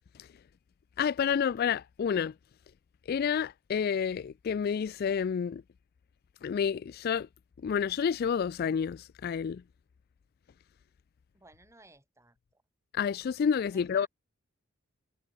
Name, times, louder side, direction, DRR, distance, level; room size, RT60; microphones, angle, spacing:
voice 1, 1.0-2.3 3.1-5.6 6.4-7.3 7.6-9.6 12.9-14.1, left 7 dB, 50° left, 0.3 m, -29 dB
voice 2, 11.3-12.6 13.7-14.1, right 2 dB, 15° right, 5.1 m, -58 dB
head